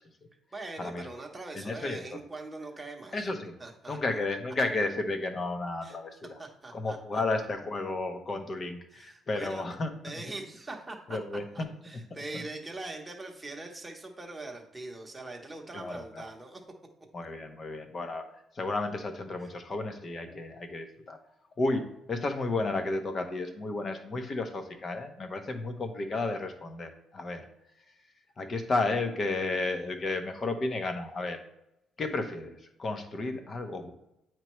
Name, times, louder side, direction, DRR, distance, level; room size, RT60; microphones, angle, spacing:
voice 1, 0.5-3.2 3.6-4.2 5.8-6.0 6.4-7.2 8.9-9.6 10.0-11.2 11.5-16.6 19.4-19.5, right 2 dB, 15° right, 1 dB, 1.0 m, -42 dB
voice 2, 1.5-2.0 3.1-3.5 3.9-6.4 6.7-9.9 11.1-11.7 12.3-12.4 15.7-16.0 17.1-18.2 18.5-21.2 21.6-27.4 28.4-31.4 32.0-33.9, left 2 dB, 30° left, 7 dB, 0.8 m, -32 dB
8.9 x 4.5 x 3.1 m, 0.83 s
cardioid pair, 150°, 0 cm